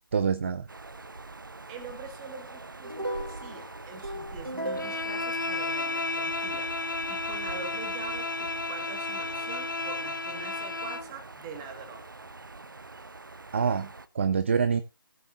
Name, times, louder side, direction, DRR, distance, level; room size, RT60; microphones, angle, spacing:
voice 1, 0.1-0.7 13.5-14.8, right 6 dB, 35° right, 0.5 m, -26 dB
sound 1, 0.7-14.1, right 3 dB, 65° right, 0.8 m, -44 dB
voice 2, 1.7-6.7 7.1-12.0, right 5 dB, 15° right, 1.7 m, -44 dB
sound 2, 2.8-6.2, equal, 90° right, 2.9 m, -37 dB
Bowed string instrument, 4.8-11.1, left 3 dB, 60° left, 0.8 m, -32 dB
19.0 x 7.0 x 2.6 m
figure-of-eight pair, 150°, 12 cm